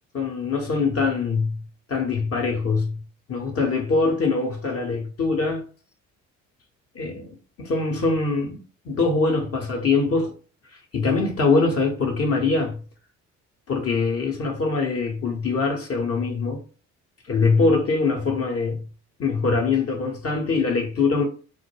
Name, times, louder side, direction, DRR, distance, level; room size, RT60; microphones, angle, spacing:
voice 1, 0.1-1.6 1.9-3.0 3.3-5.6 6.9-10.3 10.7-12.8 13.7-16.6 17.3-18.8 19.2-21.3, left 4 dB, 35° left, 0.7 m, -23 dB
2.2 x 2.1 x 3.1 m
figure-of-eight pair, 50°, 39 cm